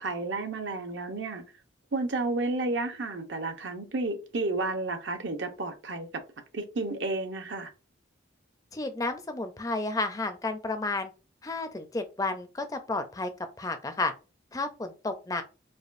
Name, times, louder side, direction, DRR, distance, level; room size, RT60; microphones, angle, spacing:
voice 1, 0.0-1.4 1.9-6.1 6.5-7.7, right 2 dB, 70° right, 0.7 m, -31 dB
voice 2, 8.7-11.1 11.4-13.3 13.6-14.1 14.5-15.4, left 3 dB, 20° left, 0.4 m, -31 dB
4.8 x 2.3 x 2.5 m
head